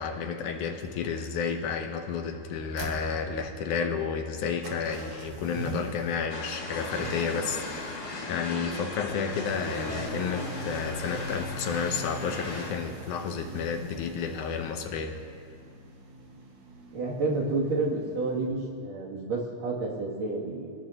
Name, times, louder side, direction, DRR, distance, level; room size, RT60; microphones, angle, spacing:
voice 1, 0.0-15.2, left 6 dB, 75° left, 5 dB, 2.5 m, -31 dB
sound 1, 0.6-18.5, right 2 dB, 70° right, 3.1 m, -43 dB
sound 2, 6.3-12.7, left 2 dB, 50° left, 2.9 m, -37 dB
voice 2, 16.9-20.7, right 3 dB, 85° right, -4 dB, 4.3 m, -30 dB
25.5 x 17.5 x 3.0 m, 2.5 s
omnidirectional pair, 3.6 m